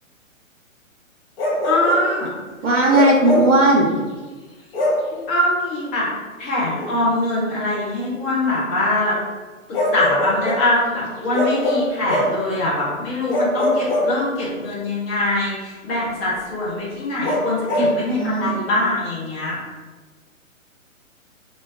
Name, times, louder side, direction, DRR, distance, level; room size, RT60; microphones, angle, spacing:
Bark, 1.4-2.1 2.9-3.6 4.7-5.1 6.8-6.9 9.7-10.7 11.3-12.4 13.3-14.6 17.2-18.0, left 1 dB, 45° left, 1.0 m, -22 dB
voice 1, 1.6-2.3 5.1-6.0 6.4-9.1 9.9-19.6, left 2 dB, 10° left, -7 dB, 0.5 m, -23 dB
voice 2, 2.6-3.9 17.8-18.5, right 2 dB, 60° right, -5 dB, 0.9 m, -17 dB
3.0 x 2.8 x 3.7 m, 1.3 s
hypercardioid pair, 140°, 41 cm